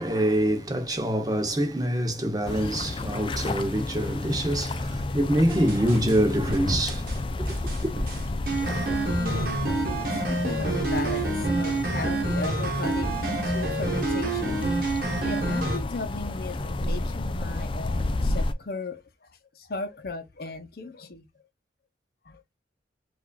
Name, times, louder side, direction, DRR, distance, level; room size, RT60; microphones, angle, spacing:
voice 1, 0.0-7.0 7.5-7.6, right 1 dB, 20° right, 0.7 m, -25 dB
sound 1, 2.4-18.5, left 2 dB, 25° left, 0.3 m, -31 dB
sound 2, 5.5-6.2 6.5-7.2 7.5-15.8, right 2 dB, 50° right, 1.2 m, -28 dB
voice 2, 9.2-21.3 22.2-22.4, left 3 dB, 55° left, 0.7 m, -37 dB
4.7 x 2.5 x 2.2 m
head